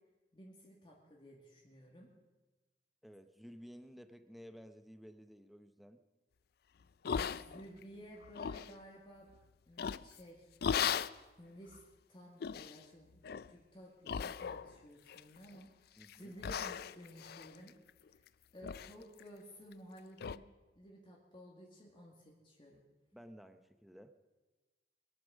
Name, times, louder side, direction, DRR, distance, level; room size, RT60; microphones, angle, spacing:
voice 1, 0.3-2.1 7.0-9.3 9.7-10.5 11.4-11.8 12.1-13.2 13.5-17.8 18.1-18.2 18.5-20.5 20.8-22.8, equal, 25° left, -2 dB, 2.0 m, -54 dB
voice 2, 3.0-6.0 16.0-16.4 23.1-24.1, equal, ahead, 9 dB, 0.7 m, -54 dB
sound 1, 7.0-7.8 8.2-8.7 9.8-10.2 10.6-11.2 11.7-11.8 12.4-12.8 13.2-13.5 14.1-14.8 15.1-15.6 16.0-16.2 16.4-18.3 18.6-18.9 19.2-19.3 19.7-19.8 20.2-20.4, left 7 dB, 55° left, 0.4 m, -37 dB
22.5 x 9.0 x 6.3 m, 1.2 s
head